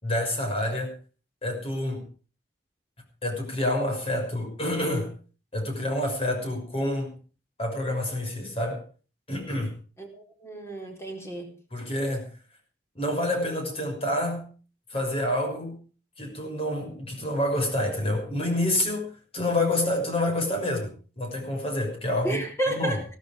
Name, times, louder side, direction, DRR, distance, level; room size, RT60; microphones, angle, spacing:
voice 1, 0.0-0.9 1.4-2.0 3.2-5.1 5.5-7.1 7.6-8.8 9.3-9.7 11.7-12.3 12.9-14.5 14.9-15.8 16.2-23.0, left 1 dB, 35° left, 3 dB, 6.0 m, -28 dB
voice 2, 10.0-11.6 22.2-23.2, right 1 dB, 15° left, 3 dB, 4.4 m, -31 dB
16.5 x 13.5 x 5.1 m, 0.38 s
head